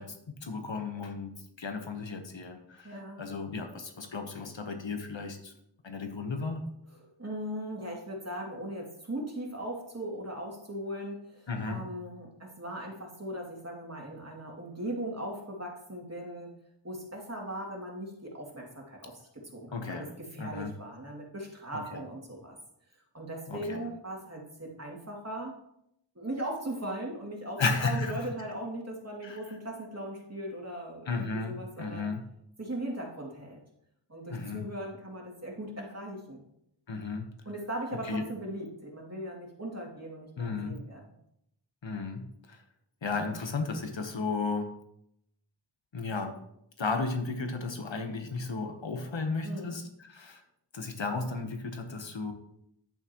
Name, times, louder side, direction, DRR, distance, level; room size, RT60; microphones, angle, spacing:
voice 1, 0.0-5.5 5.8-6.6 11.5-11.9 19.7-20.1 20.4-20.8 21.7-22.0 23.5-23.9 27.6-28.3 29.2-29.6 31.1-32.2 34.3-34.7 36.9-37.3 38.0-38.3 40.4-40.8 41.8-42.6 43.0-44.8 45.9-46.4 46.8-50.4 50.7-52.3, left 4 dB, 85° left, 6 dB, 1.2 m, -34 dB
voice 2, 2.8-3.2 7.2-16.5 16.8-20.1 20.3-22.6 23.1-25.6 26.1-32.1 32.6-33.6 34.1-36.4 37.5-41.0 49.4-49.8, right 1 dB, 35° right, -2 dB, 2.6 m, -39 dB
10.5 x 8.6 x 3.0 m, 0.77 s
wide cardioid pair, 45°, 44 cm